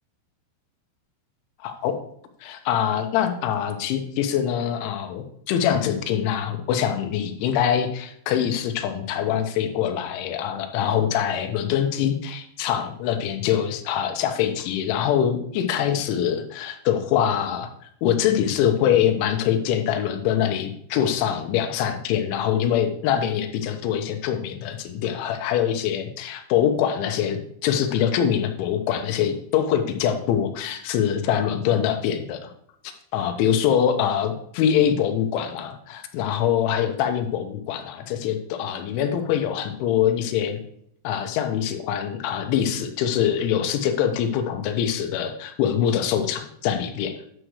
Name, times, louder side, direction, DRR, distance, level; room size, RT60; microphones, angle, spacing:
voice 1, 1.6-2.0 2.4-17.7 18.0-32.5 33.1-40.6 41.0-47.1, left 9 dB, 80° left, 6 dB, 3.1 m, -24 dB
9.9 x 7.7 x 3.2 m, 0.67 s
omnidirectional pair, 5.8 m